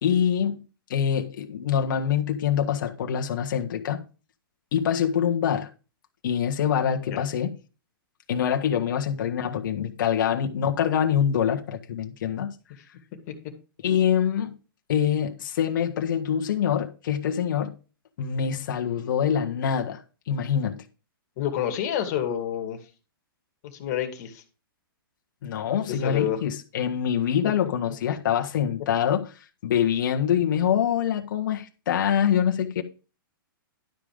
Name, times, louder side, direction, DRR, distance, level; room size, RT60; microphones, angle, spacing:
voice 1, 0.0-0.6 0.9-4.0 4.7-5.7 6.2-7.5 8.3-12.5 13.8-14.6 14.9-17.8 18.2-20.0 20.3-20.8 25.4-29.3 29.6-32.8, left 8 dB, 60° left, 1.5 m, -25 dB
voice 2, 21.4-22.8 23.7-24.4 25.9-26.4 27.4-27.5, left 10 dB, 40° left, 2.3 m, -28 dB
12.0 x 5.2 x 5.1 m
hypercardioid pair, 145°, 12 cm